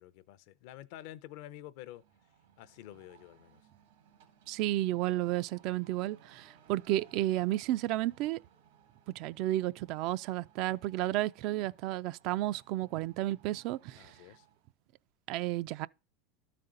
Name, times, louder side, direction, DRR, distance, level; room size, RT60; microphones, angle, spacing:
voice 1, 0.0-2.0 2.6-3.6 13.9-14.5, left 13 dB, 65° left, 0.5 m, -49 dB
sound 1, 1.9-14.7, right 8 dB, 85° right, 2.0 m, -63 dB
voice 2, 4.5-8.4 9.2-14.1 15.3-15.9, right 15 dB, 60° right, 0.3 m, -32 dB
12.0 x 4.2 x 3.8 m
supercardioid pair, 110°, 0 cm